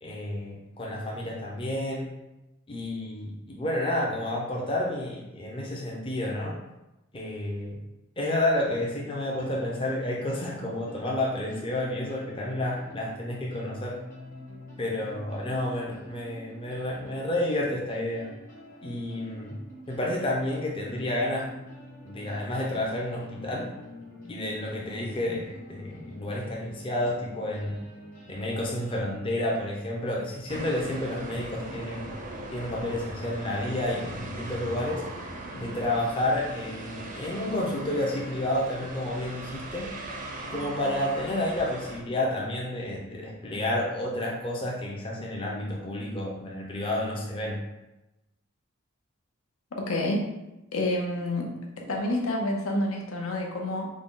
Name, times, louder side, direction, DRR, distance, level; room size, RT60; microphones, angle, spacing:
voice 1, 0.0-2.1 2.7-6.5 7.1-7.8 8.2-13.9 14.8-18.3 18.8-19.6 19.9-21.5 22.0-23.7 24.3-27.7 28.3-32.1 32.5-35.0 35.5-39.9 40.5-47.6, left 1 dB, 25° left, -3 dB, 0.5 m, -30 dB
sound 1, 9.2-29.0, left 1 dB, 40° left, 1.2 m, -47 dB
sound 2, 30.5-42.0, right 1 dB, 40° right, 0.4 m, -39 dB
voice 2, 49.8-50.3 50.7-53.9, left 1 dB, 80° left, 0 dB, 0.7 m, -28 dB
3.7 x 2.2 x 3.6 m, 0.96 s
head